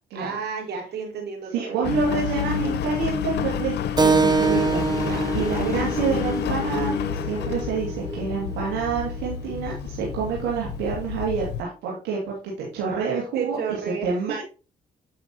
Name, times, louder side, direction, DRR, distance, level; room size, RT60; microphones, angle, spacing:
voice 1, 0.1-1.9 5.0-5.5 13.3-14.4, right 6 dB, 70° right, 1 dB, 3.2 m, -32 dB
voice 2, 1.5-13.8 14.0-14.4, right 6 dB, 85° right, -3 dB, 2.2 m, -28 dB
Engine, 1.8-11.6, left 8 dB, 70° left, 0.8 m, -29 dB
sound 1, 4.0-8.9 9.2-9.3, left 2 dB, 20° left, 1.6 m, -36 dB
Keyboard (musical), 4.0-9.1, right 4 dB, 25° right, 0.7 m, -26 dB
8.4 x 5.7 x 2.9 m, 0.33 s
supercardioid pair, 50°, 18 cm